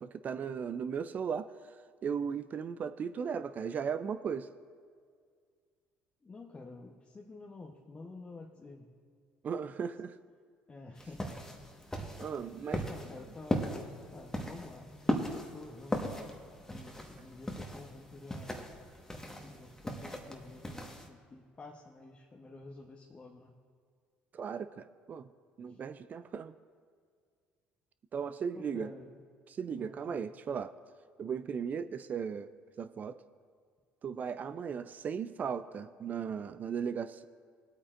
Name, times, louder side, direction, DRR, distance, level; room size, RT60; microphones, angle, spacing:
voice 1, 0.0-4.5 9.4-10.2 12.2-12.9 24.3-25.3 25.6-26.5 28.1-28.9 29.5-30.7 31.2-32.5 32.8-33.2 34.0-37.2, right 7 dB, 45° right, 12 dB, 0.4 m, -37 dB
voice 2, 6.2-8.9 9.8-9.9 10.7-11.3 12.9-13.7 14.1-18.6 19.5-23.5 25.7-25.8 28.5-29.2 29.8-30.3, left 3 dB, 30° left, 0 dB, 1.0 m, -50 dB
sound 1, 11.0-21.1, left 1 dB, 10° left, 1.4 m, -38 dB
20.0 x 8.6 x 2.5 m, 2.1 s
supercardioid pair, 70°, 4 cm